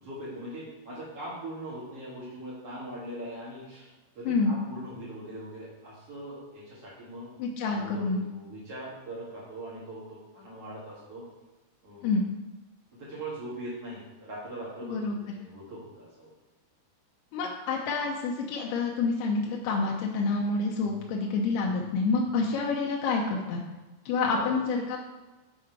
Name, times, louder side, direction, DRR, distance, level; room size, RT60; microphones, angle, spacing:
voice 1, 0.0-3.9 4.2-7.3 7.7-11.2 11.8-12.1 12.9-16.3 20.8-21.0 21.6-21.7 22.3-22.4 24.2-24.5, right 1 dB, 50° right, -8 dB, 2.1 m, -41 dB
voice 2, 7.4-8.2 12.0-12.2 14.9-15.2 17.3-23.6 24.1-25.0, left 4 dB, 80° left, -1 dB, 2.5 m, -28 dB
7.4 x 4.7 x 4.5 m, 1.1 s
omnidirectional pair, 4.7 m